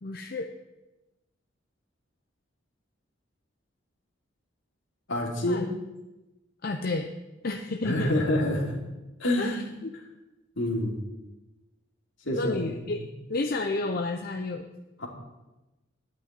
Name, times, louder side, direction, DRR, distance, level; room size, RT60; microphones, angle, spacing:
voice 1, 0.0-0.5 5.5-5.7 6.6-7.1 7.4-8.1 9.4-9.9 12.3-13.0 13.3-14.7, left 2 dB, 50° left, 4 dB, 0.7 m, -31 dB
voice 2, 5.1-5.7 7.8-8.7 9.2-9.7 10.6-11.0 12.2-13.1 15.0-15.1, left 1 dB, 75° left, -1 dB, 3.0 m, -27 dB
11.5 x 6.2 x 9.4 m, 1.0 s
head